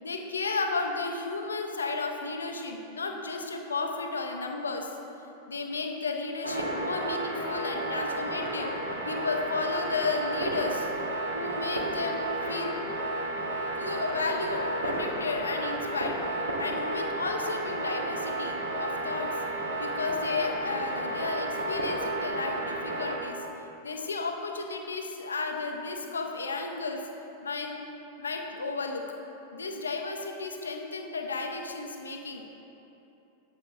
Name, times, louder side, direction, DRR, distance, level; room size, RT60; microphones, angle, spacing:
voice 1, 0.0-4.9 5.5-8.7 9.1-10.9 11.3-12.7 13.8-16.2 16.6-19.3 19.8-23.4 23.8-27.0 27.4-27.8 28.2-29.0 29.5-32.5, left 3 dB, 75° left, 3 dB, 0.7 m, -33 dB
sound 1, 6.4-23.1, right 1 dB, 80° right, 1.1 m, -32 dB
12.5 x 7.7 x 2.4 m, 3.0 s
figure-of-eight pair, 90°, 0 cm